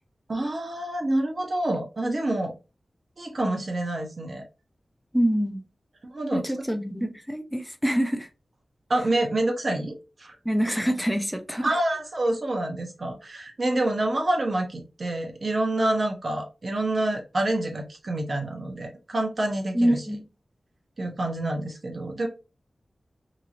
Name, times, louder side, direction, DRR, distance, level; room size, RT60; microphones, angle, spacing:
voice 1, 0.3-2.5 3.2-4.4 6.1-6.4 8.9-10.3 11.6-20.0 21.0-22.3, right 1 dB, 50° right, 2 dB, 0.9 m, -27 dB
voice 2, 5.1-5.6 6.3-8.3 10.4-11.7 19.7-20.2, equal, ahead, 5 dB, 0.6 m, -25 dB
3.0 x 2.6 x 2.5 m, 0.29 s
wide cardioid pair, 90°, 0 cm